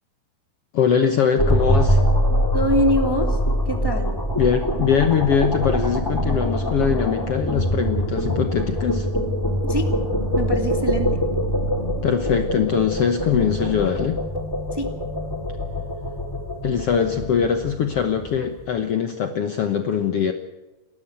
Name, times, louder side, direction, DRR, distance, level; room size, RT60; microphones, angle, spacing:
voice 1, 0.7-2.0 4.4-9.1 12.0-14.2 16.6-20.3, left 7 dB, 85° left, 7 dB, 1.3 m, -22 dB
sound 1, 1.4-18.6, equal, 10° left, 1.4 m, -24 dB
voice 2, 2.5-4.2 9.7-10.1 10.3-11.2 14.7-15.0, equal, 10° right, 4 dB, 1.7 m, -24 dB
29.5 x 13.0 x 7.9 m, 1.1 s
omnidirectional pair, 4.5 m